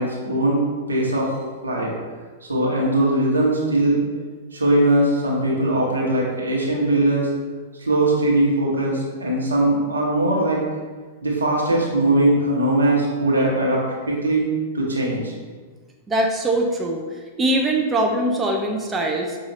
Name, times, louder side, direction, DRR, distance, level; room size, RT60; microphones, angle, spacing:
voice 1, 0.0-1.3 1.6-1.9 2.5-4.0 4.5-7.3 7.8-10.6 11.2-15.3, right 1 dB, 80° right, -3 dB, 0.9 m, -20 dB
voice 2, 16.1-17.0 17.4-19.4, right 1 dB, 15° right, 1 dB, 0.4 m, -22 dB
5.4 x 2.4 x 3.0 m, 1.5 s
figure-of-eight pair, 100°, 0 cm